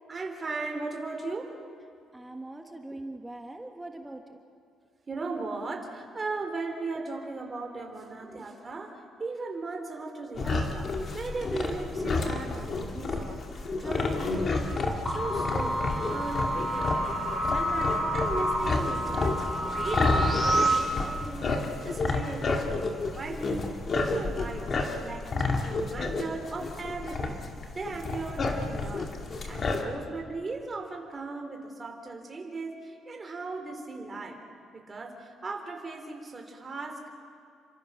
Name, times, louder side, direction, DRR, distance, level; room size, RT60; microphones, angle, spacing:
voice 1, 0.1-1.6 5.1-13.4 13.8-15.8 16.1-21.5 21.8-22.8 23.1-23.7 23.9-24.7 25.0-27.4 27.7-29.1 29.5-34.4 34.7-37.1, right 3 dB, 25° right, 2 dB, 4.0 m, -37 dB
voice 2, 2.1-4.4 8.2-8.5, right 2 dB, 10° right, 3 dB, 1.6 m, -42 dB
sound 1, 10.4-29.8, left 3 dB, 40° left, 2.4 m, -30 dB
sound 2, 15.1-20.8, right 1 dB, 20° left, 5.8 m, -28 dB
29.5 x 25.5 x 6.5 m, 2.3 s
cardioid pair, 130°, 0 cm